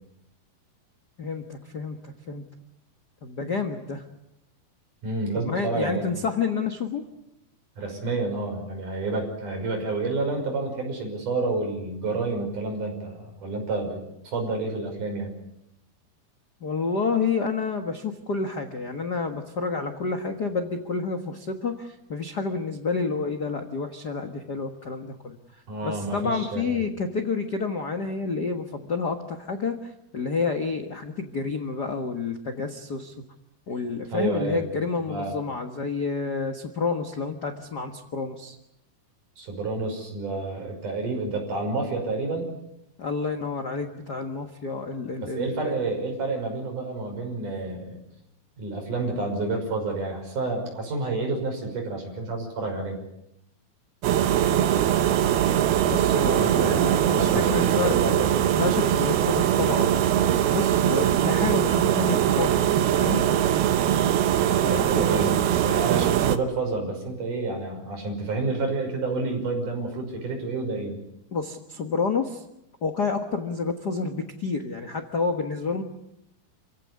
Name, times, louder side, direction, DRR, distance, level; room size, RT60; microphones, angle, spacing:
voice 1, 1.2-2.4 3.2-4.0 5.4-7.0 16.6-25.3 25.8-33.1 33.7-38.6 43.0-45.7 55.9-58.0 58.6-63.2 64.6-65.0 71.3-72.4 72.8-75.8, left 4 dB, 70° left, 5 dB, 0.9 m, -29 dB
voice 2, 5.0-6.0 7.8-15.3 25.7-26.8 34.1-34.6 35.1-35.4 39.4-42.5 45.2-48.0 48.6-53.0 56.2-58.3 64.2-65.4 65.6-71.0, right 3 dB, 55° right, 3 dB, 7.3 m, -29 dB
sound 1, 54.0-66.4, right 10 dB, 80° right, 3.0 m, -22 dB
28.0 x 16.5 x 9.7 m, 0.84 s
omnidirectional pair, 4.4 m